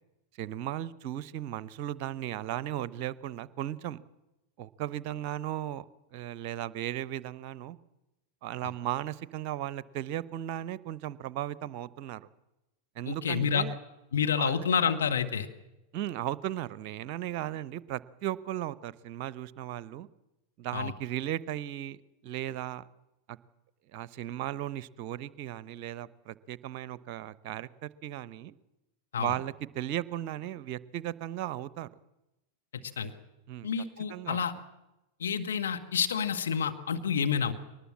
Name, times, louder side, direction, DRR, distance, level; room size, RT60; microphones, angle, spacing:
voice 1, 0.4-4.0 4.6-7.8 8.4-12.3 13.0-13.8 14.4-14.7 15.9-20.1 20.6-22.0 22.2-22.8 23.3-23.4 23.9-28.5 29.2-31.9 33.5-33.7 34.1-34.4, right 12 dB, 45° right, 20 dB, 0.8 m, -36 dB
voice 2, 13.1-13.6 14.1-15.5 20.7-20.9 29.1-29.3 33.0-33.1 33.6-34.5 35.2-37.5, left 7 dB, 65° left, 6 dB, 1.7 m, -29 dB
22.5 x 19.5 x 7.5 m, 0.98 s
figure-of-eight pair, 90°, 0 cm